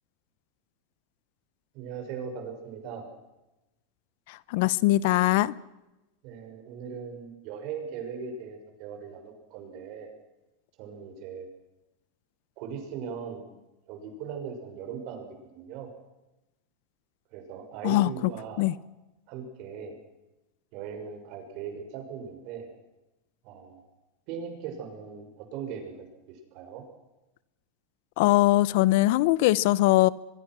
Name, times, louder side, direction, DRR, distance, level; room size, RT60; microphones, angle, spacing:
voice 1, 1.7-3.1 6.2-10.1 10.8-11.5 12.6-13.5 13.9-15.3 15.5-15.9 17.3-18.6 19.3-19.9 20.7-22.7 23.4-23.8 24.3-25.9 26.3-26.8, right 6 dB, 50° right, 6.2 m, -39 dB
voice 2, 4.5-5.5 17.8-18.1 18.6-18.7 28.2-30.1, left 17 dB, 65° left, 0.8 m, -21 dB
23.0 x 23.0 x 6.2 m
supercardioid pair, 140°, 0 cm